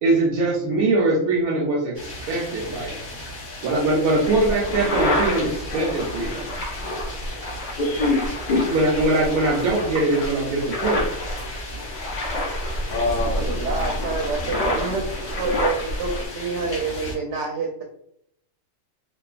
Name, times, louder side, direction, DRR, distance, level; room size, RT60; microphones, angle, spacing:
voice 1, 0.0-3.0 3.6-6.5 8.7-11.1, right 2 dB, 90° right, -2 dB, 1.1 m, -22 dB
sound 1, 1.9-17.2, left 2 dB, 35° left, 1.4 m, -36 dB
sound 2, 4.2-16.2, left 1 dB, 60° left, 0.8 m, -29 dB
voice 2, 7.7-8.8 12.9-13.4, left 2 dB, 85° left, -3 dB, 0.4 m, -24 dB
voice 3, 13.3-15.0 15.4-17.8, right 3 dB, 65° right, -1 dB, 0.8 m, -27 dB
3.1 x 2.1 x 2.4 m, 0.70 s
omnidirectional pair, 1.5 m